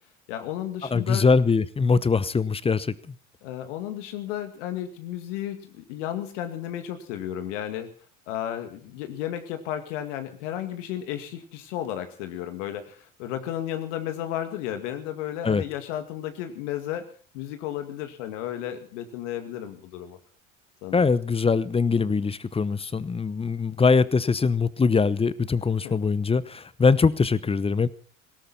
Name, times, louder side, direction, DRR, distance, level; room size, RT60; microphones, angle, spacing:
voice 1, 0.3-1.2 3.4-7.9 8.3-17.1 17.3-20.2 20.8-21.1 25.8-25.9, left 11 dB, 65° left, 7 dB, 2.2 m, -33 dB
voice 2, 0.9-3.1 15.4-15.6 20.9-27.9, left 4 dB, 15° left, 18 dB, 0.9 m, -22 dB
19.0 x 17.5 x 4.2 m, 0.43 s
hypercardioid pair, 75°, 39 cm